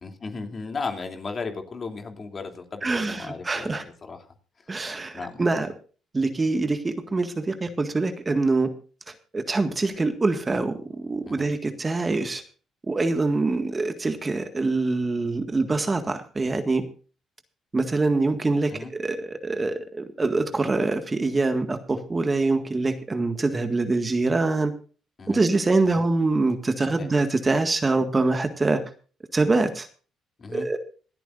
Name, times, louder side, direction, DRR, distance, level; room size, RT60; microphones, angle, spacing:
voice 1, 0.0-4.3 5.1-5.6 11.2-11.5 18.7-18.9 25.2-25.4 25.8-26.0 26.8-27.1 30.4-30.7, left 4 dB, 40° left, 4 dB, 2.9 m, -36 dB
voice 2, 2.8-3.8 4.7-5.7 6.1-8.7 9.3-12.4 12.9-16.8 17.7-24.7 25.3-28.8 29.3-29.9 30.5-30.8, right 3 dB, 25° right, 8 dB, 1.7 m, -24 dB
27.0 x 9.0 x 2.6 m, 0.38 s
supercardioid pair, 75°, 0 cm